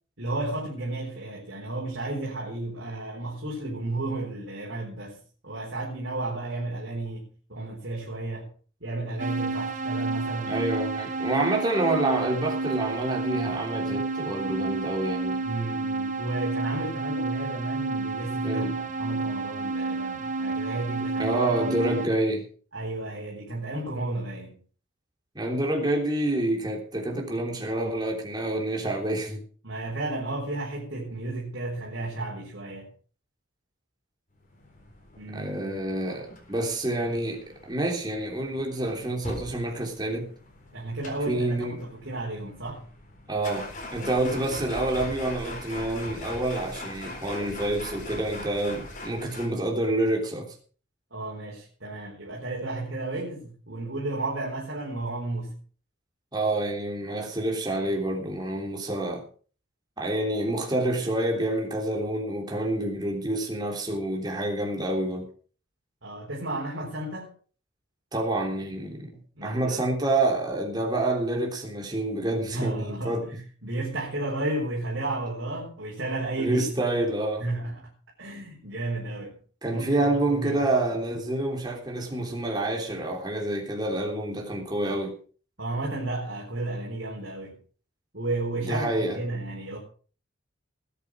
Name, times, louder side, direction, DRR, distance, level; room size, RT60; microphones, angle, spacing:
voice 1, 0.2-8.5 8.8-10.7 15.4-21.4 21.6-21.8 22.7-24.6 29.6-32.9 35.1-35.8 40.7-42.8 44.0-44.6 51.1-55.6 66.0-67.3 69.4-69.8 72.5-76.6 77.4-77.9 78.2-79.4 79.7-80.6 85.6-87.6 88.1-89.8, right 2 dB, 65° right, 4.3 m, -33 dB
sound 1, 9.2-22.1, right 3 dB, 40° right, 1.1 m, -30 dB
voice 2, 10.5-15.4 18.4-18.8 21.2-22.5 25.4-29.4 35.3-40.3 41.3-41.8 43.3-50.5 56.3-59.2 60.0-65.3 68.1-73.3 76.4-77.4 79.6-85.2 88.6-89.2, right 1 dB, 20° right, 3.4 m, -28 dB
sound 2, 34.5-49.5, left 1 dB, 40° left, 4.0 m, -41 dB
19.5 x 8.6 x 4.9 m
head